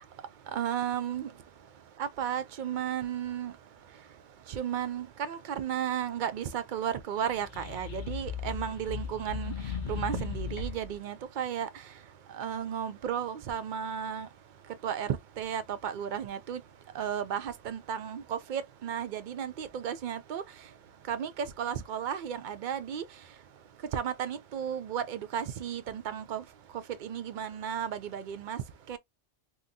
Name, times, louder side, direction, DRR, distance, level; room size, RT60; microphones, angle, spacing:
voice 1, 0.5-1.3 2.0-3.5 4.5-11.9 12.3-14.3 14.8-16.6 16.9-20.4 21.1-23.1 23.9-26.4 26.7-29.0, right 9 dB, 60° right, 0.5 m, -34 dB
sound 1, 7.3-10.9, left 6 dB, 50° left, 0.7 m, -37 dB
3.7 x 2.1 x 2.6 m
omnidirectional pair, 1.2 m